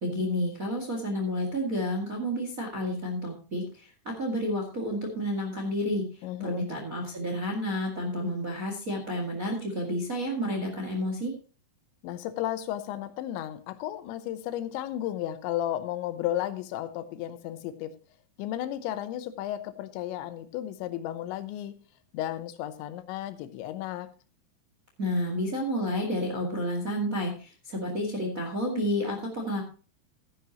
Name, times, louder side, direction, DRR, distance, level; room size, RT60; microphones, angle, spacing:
voice 1, 0.0-6.0 6.4-11.3 25.0-29.6, equal, 35° right, 1 dB, 1.3 m, -30 dB
voice 2, 6.2-6.7 12.0-17.9 18.4-21.7 22.1-24.1, left 12 dB, 90° left, 11 dB, 3.2 m, -33 dB
13.5 x 10.5 x 2.9 m, 0.37 s
omnidirectional pair, 5.1 m